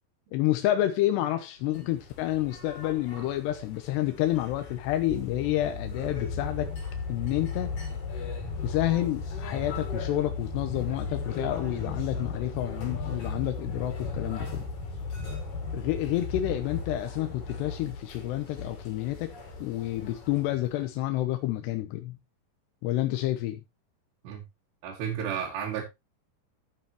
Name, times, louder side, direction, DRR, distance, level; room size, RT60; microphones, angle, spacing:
voice 1, 0.3-6.7 7.1-7.7 8.6-14.7 15.7-19.3 19.6-22.2 22.8-23.6, left 14 dB, 85° left, 2.9 m, -29 dB
sound 1, 1.7-20.9, left 4 dB, 45° left, 4.2 m, -36 dB
voice 2, 24.8-25.8, right 8 dB, 75° right, 3.9 m, -32 dB
11.5 x 8.7 x 3.0 m
omnidirectional pair, 4.9 m